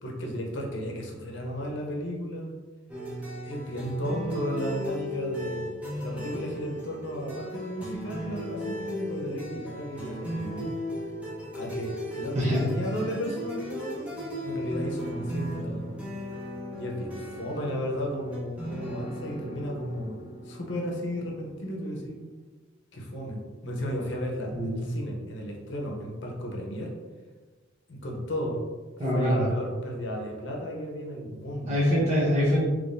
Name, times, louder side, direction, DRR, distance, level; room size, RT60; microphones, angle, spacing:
voice 1, 0.0-2.6 3.4-5.7 5.9-10.7 11.5-14.1 14.4-15.9 16.7-20.2 20.4-22.2 22.9-27.0 27.9-28.6 29.0-32.0, equal, 65° left, 0 dB, 0.7 m, -34 dB
sound 1, 2.9-22.3, equal, 5° right, 0.8 m, -36 dB
voice 2, 12.3-12.7 24.5-24.8 29.0-29.5 31.7-32.6, equal, 35° right, -7 dB, 0.9 m, -24 dB
3.6 x 3.1 x 2.6 m, 1.3 s
head